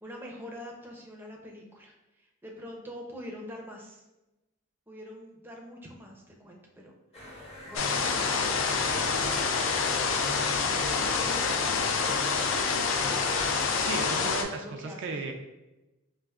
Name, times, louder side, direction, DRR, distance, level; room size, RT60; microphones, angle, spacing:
voice 1, 0.0-4.0 4.9-6.9 7.3-8.4 14.2-15.3, equal, 10° right, -1 dB, 0.5 m, -46 dB
sound 1, 7.1-14.4, equal, 30° left, 0.9 m, -45 dB
sound 2, 7.8-14.4, left 5 dB, 65° left, 0.4 m, -27 dB
voice 2, 13.8-15.3, right 3 dB, 60° right, 4 dB, 0.3 m, -35 dB
4.6 x 2.5 x 2.3 m, 1.0 s
head